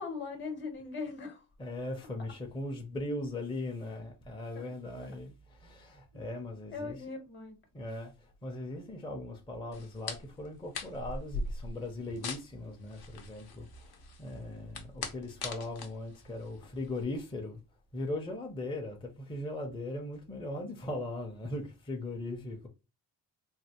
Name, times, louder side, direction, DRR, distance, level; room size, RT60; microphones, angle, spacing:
voice 1, 0.0-1.4 4.5-4.6 6.1-6.2 6.7-7.6, left 4 dB, 30° left, 0.9 m, -40 dB
voice 2, 1.6-7.1 7.7-17.6 17.9-22.7, left 1 dB, 15° left, 0.5 m, -39 dB
sound 1, 9.7-17.0, left 3 dB, 75° left, 0.8 m, -42 dB
3.2 x 2.5 x 2.8 m
cardioid pair, 135°, 38 cm